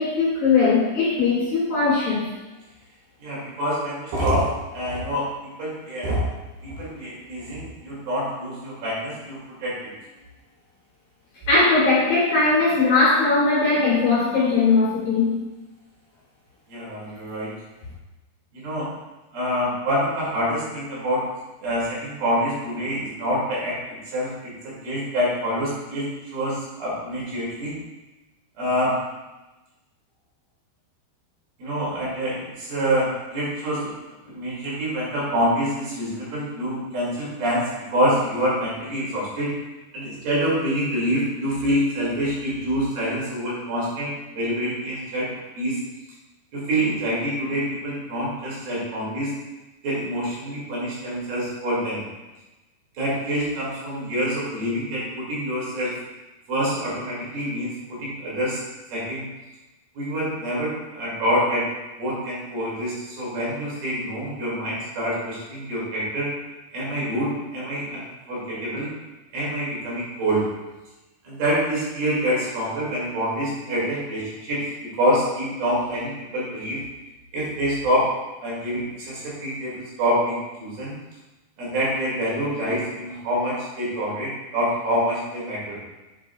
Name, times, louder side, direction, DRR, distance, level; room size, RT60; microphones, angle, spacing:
voice 1, 0.0-2.3 11.5-15.4, left 3 dB, 55° left, -7 dB, 2.7 m, -19 dB
voice 2, 3.2-6.3 6.6-9.9 16.7-17.5 18.5-18.9 19.3-21.3 21.6-27.8 28.6-29.0 31.6-34.0 34.3-39.5 39.9-45.3 45.6-45.8 46.5-49.3 49.8-52.0 53.0-56.0 56.5-58.6 58.9-59.3 60.0-61.7 62.0-66.3 66.7-68.9 69.3-70.4 71.2-74.6 75.0-76.8 77.3-78.1 78.4-81.0 81.6-85.8, equal, 65° right, -6 dB, 4.0 m, -26 dB
7.8 x 7.6 x 2.3 m, 1.1 s
omnidirectional pair, 4.6 m